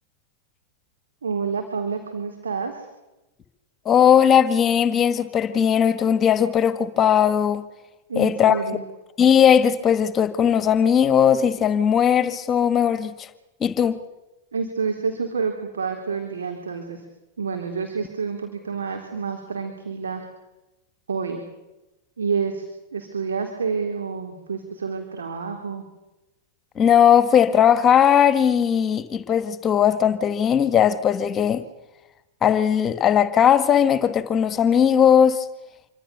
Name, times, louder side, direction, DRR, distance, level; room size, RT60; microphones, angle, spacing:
voice 1, 1.2-2.9 8.1-8.8 14.5-17.0 17.4-20.2 21.1-21.4 22.2-22.7 22.9-25.8, right 5 dB, 70° right, 3.8 m, -28 dB
voice 2, 3.9-7.6 8.2-8.6 9.2-13.3 13.6-14.0 26.8-31.6 32.4-35.5, left 8 dB, 25° left, 1.9 m, -18 dB
27.0 x 24.5 x 7.1 m
figure-of-eight pair, 90°, 0 cm